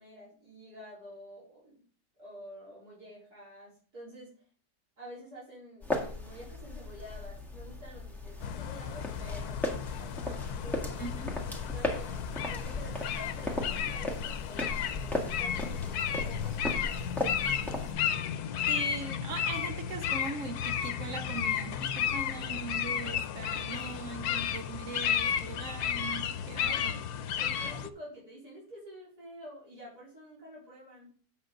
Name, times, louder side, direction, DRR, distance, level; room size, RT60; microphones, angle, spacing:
voice 1, 0.0-1.8 2.2-4.3 5.0-11.0 11.7-12.2 12.5-17.1 26.5-27.0 27.3-31.1, equal, 80° right, 4.7 m, -49 dB
sound 1, 5.8-17.9, left 2 dB, ahead, 1.7 m, -37 dB
sound 2, 8.4-27.9, left 8 dB, 85° left, 1.2 m, -33 dB
voice 2, 11.0-11.5 18.7-27.0, right 4 dB, 60° right, 1.0 m, -40 dB
8.7 x 7.5 x 3.9 m
omnidirectional pair, 1.6 m